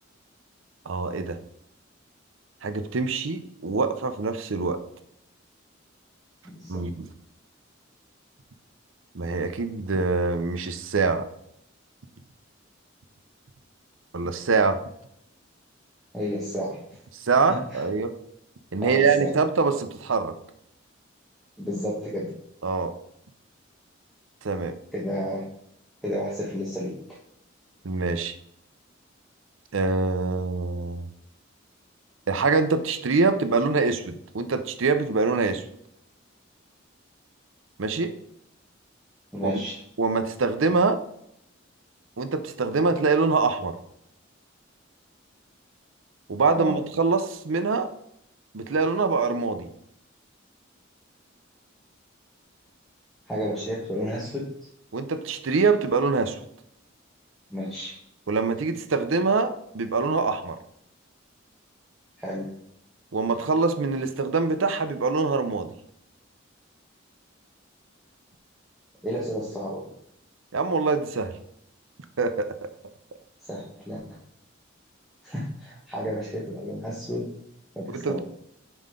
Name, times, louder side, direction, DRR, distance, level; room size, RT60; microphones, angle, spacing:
voice 1, 0.9-1.4 2.6-4.8 6.7-7.1 9.1-11.2 14.1-14.8 17.1-18.1 18.7-20.3 22.6-22.9 24.4-24.7 27.8-28.3 29.7-31.1 32.3-35.6 37.8-38.1 39.4-39.6 40.0-41.0 42.2-43.7 46.3-47.9 48.5-49.7 54.9-56.4 58.3-60.6 63.1-65.7 70.5-71.3 72.2-72.6 77.9-78.2, right 4 dB, 90° right, 9 dB, 0.6 m, -24 dB
voice 2, 6.4-6.8 16.1-17.0 17.5-17.8 18.8-19.3 21.6-22.3 24.9-25.4 26.0-26.9 39.3-39.8 46.6-46.8 53.3-54.5 57.5-57.9 62.2-62.5 69.0-69.9 73.5-74.2 75.2-77.3 77.7-78.2, equal, ahead, -6 dB, 1.3 m, -31 dB
5.7 x 5.0 x 3.7 m, 0.73 s
head